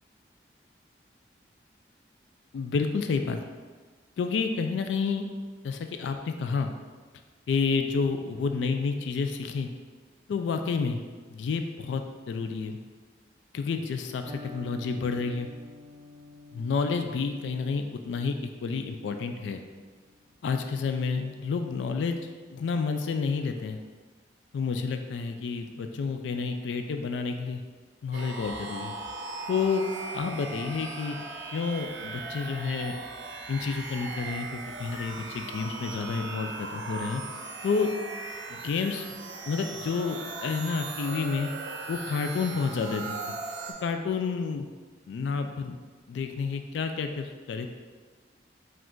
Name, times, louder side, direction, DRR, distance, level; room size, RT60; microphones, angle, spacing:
voice 1, 2.5-3.4 4.2-5.3 5.6-6.7 7.5-9.7 10.3-11.0 11.3-12.8 13.5-15.5 16.5-19.6 20.4-22.2 22.5-23.8 24.5-27.6 28.0-28.9 29.5-29.8 30.1-31.2 31.5-32.9 33.5-37.2 37.6-37.9 38.5-39.2 39.5-41.5 41.9-43.1 43.8-44.7 45.1-45.8 46.1-47.7, left 5 dB, 85° left, 7 dB, 0.3 m, -30 dB
Electric guitar, 14.3-22.1, left 2 dB, 30° right, 0.3 m, -50 dB
sound 1, 28.1-43.7, right 3 dB, 80° right, 0.6 m, -38 dB
4.9 x 2.4 x 3.7 m, 1.4 s
head